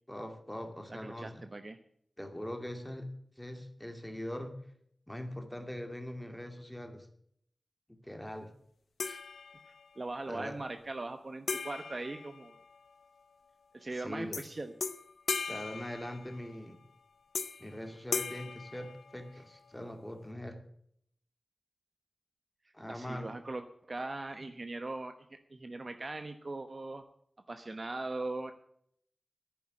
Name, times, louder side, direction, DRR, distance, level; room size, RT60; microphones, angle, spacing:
voice 1, 0.1-1.4 2.2-3.1 3.4-4.6 5.1-7.1 7.9-8.5 10.3-10.5 13.9-14.4 15.5-16.8 17.6-20.6 22.7-23.3, left 1 dB, 10° left, 6 dB, 2.4 m, -42 dB
voice 2, 1.0-1.8 9.0-9.2 10.0-12.6 13.7-14.7 19.3-19.4 22.9-27.0 27.5-28.5, right 2 dB, 40° right, 7 dB, 1.1 m, -40 dB
sound 1, 9.0-10.0 11.5-13.0 14.3-14.5 14.8-16.6 17.3-17.7 18.1-19.5, left 4 dB, 80° left, 0.8 m, -38 dB
10.5 x 9.4 x 10.0 m, 0.67 s
wide cardioid pair, 80°, 0 cm